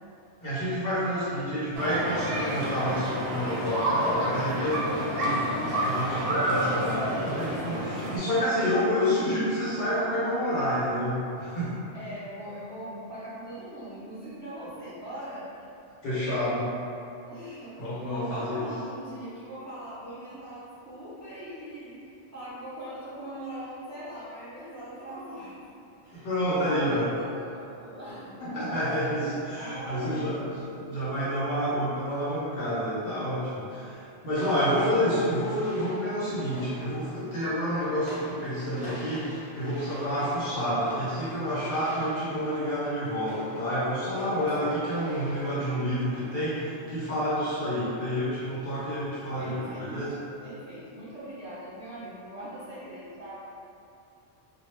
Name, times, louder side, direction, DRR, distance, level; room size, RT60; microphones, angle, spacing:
voice 1, 0.4-5.4 5.8-11.7 16.0-16.7 17.8-18.7 26.1-27.1 28.4-39.3 39.5-50.1, equal, 60° left, -11 dB, 1.0 m, -29 dB
voice 2, 1.1-1.5 11.9-15.7 17.3-22.0 22.3-25.6 26.0-28.3 28.7-28.8 29.5-30.6 44.0-44.8 49.3-49.9 50.4-53.3, right 1 dB, 15° right, -13 dB, 0.8 m, -41 dB
sound 1, 1.7-8.2, right 1 dB, 65° right, 0.7 m, -29 dB
sound 2, 34.4-47.8, equal, 35° left, 0.7 m, -46 dB
2.1 x 2.0 x 3.2 m, 2.7 s
omnidirectional pair, 1.1 m